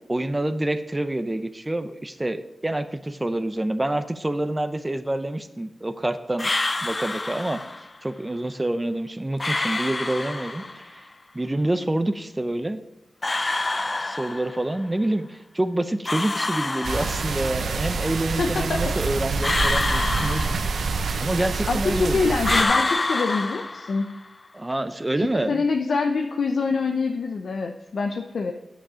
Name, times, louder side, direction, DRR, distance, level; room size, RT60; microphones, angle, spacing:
voice 1, 0.1-6.5 6.8-7.6 8.0-11.0 11.3-12.8 14.0-20.6 21.2-22.3 24.5-25.5, right 1 dB, 15° right, 10 dB, 0.7 m, -27 dB
sound 1, 6.4-7.9 9.4-10.9 13.2-14.8 16.1-17.6 19.4-21.2 22.4-24.3, left 2 dB, 30° left, 0.5 m, -27 dB
sound 2, 16.8-22.6, right 4 dB, 90° right, 0.9 m, -27 dB
voice 2, 18.4-18.9 21.7-24.1 25.2-28.5, left 4 dB, 75° left, 3 dB, 0.8 m, -25 dB
10.0 x 9.3 x 5.0 m, 0.94 s
wide cardioid pair, 105°, 0 cm